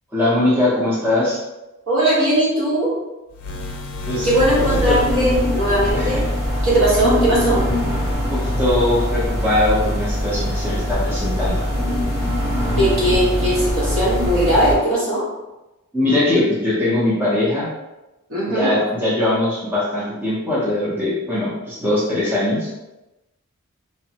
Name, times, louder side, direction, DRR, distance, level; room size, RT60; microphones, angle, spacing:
voice 1, 0.1-1.4 4.1-4.3 4.9-5.0 5.9-6.3 8.2-11.6 15.9-17.7 18.5-22.7, left 1 dB, 10° right, -9 dB, 0.5 m, -21 dB
voice 2, 1.9-3.0 4.2-6.2 6.6-7.6 12.8-15.2 18.3-18.8, right 1 dB, 65° right, -7 dB, 1.2 m, -19 dB
sound 1, 3.3-5.7, left 2 dB, 90° left, 0.4 m, -31 dB
sound 2, 4.3-14.7, equal, 30° right, 1.0 m, -22 dB
3.1 x 2.0 x 2.7 m, 1.0 s
head